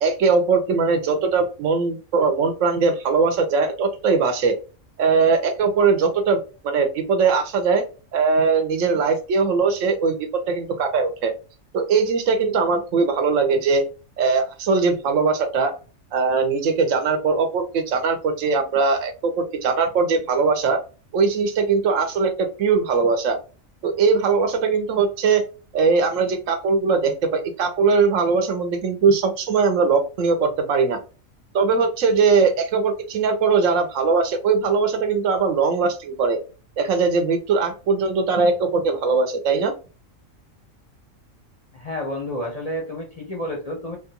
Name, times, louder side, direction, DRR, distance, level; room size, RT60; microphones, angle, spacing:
voice 1, 0.0-4.5 5.0-7.8 8.1-10.2 10.5-11.3 11.7-13.8 14.2-15.7 16.1-20.8 21.1-23.4 23.8-25.4 25.7-31.0 31.5-36.4 36.8-39.7, right 4 dB, 70° right, 6 dB, 1.1 m, -20 dB
voice 2, 41.7-44.0, left 1 dB, 40° left, -1 dB, 0.6 m, -30 dB
3.3 x 2.3 x 2.9 m, 0.34 s
omnidirectional pair, 1.4 m